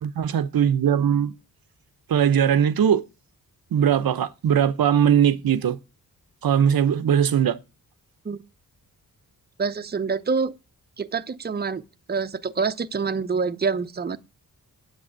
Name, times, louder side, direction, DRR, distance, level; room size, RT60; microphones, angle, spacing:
voice 1, 0.0-1.3 2.1-3.0 3.7-5.8 6.4-7.6, right 8 dB, 70° right, 0.9 m, -20 dB
voice 2, 9.6-10.5 11.0-11.8 12.1-14.2, right 5 dB, 25° right, 0.8 m, -26 dB
9.1 x 7.9 x 8.7 m
cardioid pair, 85°, 37 cm